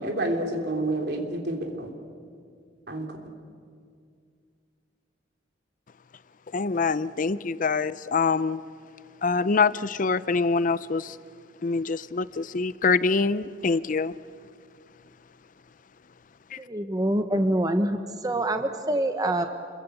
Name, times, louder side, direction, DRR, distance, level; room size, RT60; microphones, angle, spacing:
voice 1, 0.0-1.9 2.9-3.2, right 1 dB, 65° right, 3 dB, 3.5 m, -29 dB
voice 2, 6.5-8.6 9.2-11.2 11.6-14.1, left 4 dB, 45° left, 16 dB, 0.6 m, -25 dB
voice 3, 16.6-19.5, right 1 dB, 20° right, 7 dB, 1.0 m, -25 dB
29.5 x 22.0 x 8.3 m, 2.2 s
head